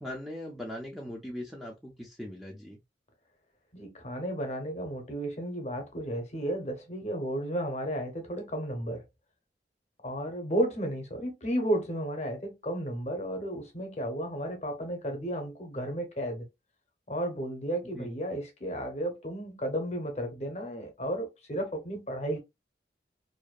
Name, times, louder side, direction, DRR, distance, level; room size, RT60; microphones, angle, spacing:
voice 1, 0.0-2.8 17.9-18.1, left 1 dB, ahead, 0.4 m, -40 dB
voice 2, 3.7-9.0 10.0-16.5 17.1-22.4, right 1 dB, 40° left, 0.7 m, -33 dB
2.5 x 2.1 x 2.2 m
head